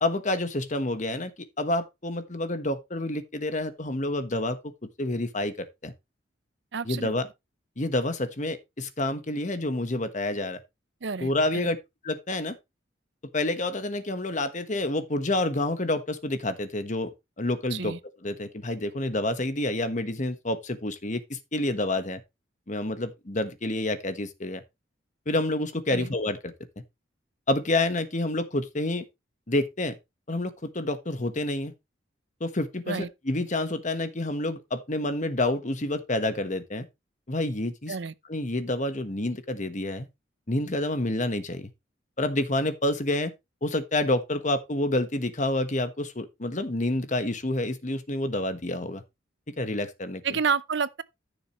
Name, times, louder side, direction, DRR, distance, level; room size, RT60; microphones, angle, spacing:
voice 1, 0.0-1.3 1.6-4.7 5.0-5.9 6.9-7.3 7.8-10.6 11.2-11.8 12.0-12.6 13.3-17.1 17.4-17.9 18.2-22.2 22.7-24.6 25.3-26.5 27.5-29.0 29.5-30.0 30.3-31.7 32.4-36.8 37.3-37.9 38.3-40.1 40.5-41.7 42.2-43.3 43.6-49.0 49.6-50.2, left 1 dB, 40° left, 1.3 m, -28 dB
voice 2, 6.7-7.1 11.0-11.7 17.7-18.0 25.9-26.1 32.9-33.1 37.9-38.1 50.2-51.0, right 5 dB, 65° right, 0.6 m, -30 dB
14.5 x 6.7 x 3.1 m
head